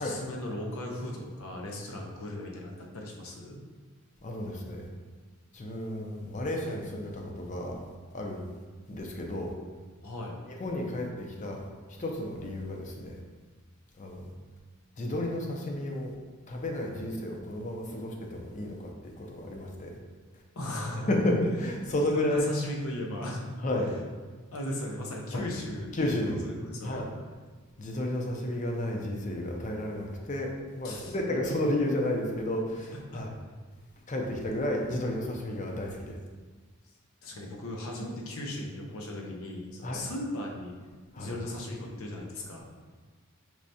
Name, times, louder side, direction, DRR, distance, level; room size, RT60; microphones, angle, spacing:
voice 1, 0.0-3.6 10.0-10.4 20.6-21.1 22.1-23.6 24.5-25.9 26.2-27.0 30.8-31.1 32.9-33.2 37.2-40.7 41.2-42.7, left 1 dB, 80° left, -1 dB, 0.7 m, -37 dB
voice 2, 4.2-4.9 5.5-7.8 8.1-8.4 8.9-9.5 10.5-11.7 12.0-13.2 14.0-14.3 15.0-16.1 16.5-20.0 21.1-22.5 23.6-23.9 25.3-25.4 25.9-26.4 26.8-27.1 27.8-33.3 34.1-36.2 39.8-40.1 41.1-41.3, left 1 dB, 35° left, 1 dB, 0.5 m, -32 dB
4.7 x 3.2 x 2.7 m, 1.4 s
head